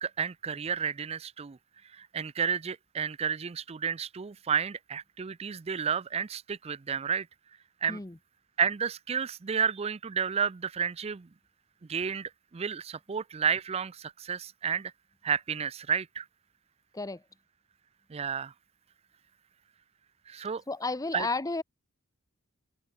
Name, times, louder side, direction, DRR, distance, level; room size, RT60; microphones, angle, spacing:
voice 1, 0.0-1.6 1.9-7.3 7.8-8.0 8.6-11.3 11.9-14.9 15.2-16.2 18.1-18.5 20.3-20.6 21.1-21.3, right 7 dB, 30° right, 0.4 m, -31 dB
voice 2, 20.7-21.6, left 3 dB, 15° left, 0.8 m, -32 dB
head